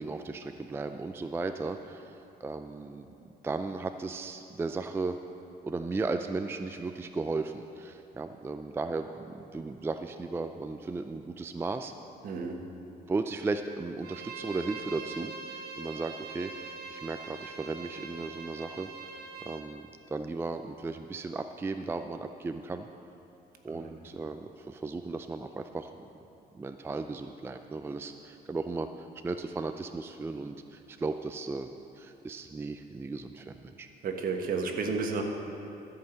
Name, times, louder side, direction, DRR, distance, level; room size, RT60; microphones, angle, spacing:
voice 1, 0.0-3.1 3.4-5.2 5.6-11.9 13.1-18.9 19.4-22.9 23.6-25.9 26.5-31.7 32.0-33.9, right 3 dB, 15° right, 7 dB, 0.4 m, -36 dB
voice 2, 12.2-12.6 23.7-23.9 34.0-35.2, right 4 dB, 55° right, 3 dB, 1.4 m, -31 dB
Bowed string instrument, 14.0-19.7, right 5 dB, 75° right, 1.1 m, -43 dB
13.0 x 5.6 x 7.8 m, 2.7 s
cardioid pair, 110°, 17 cm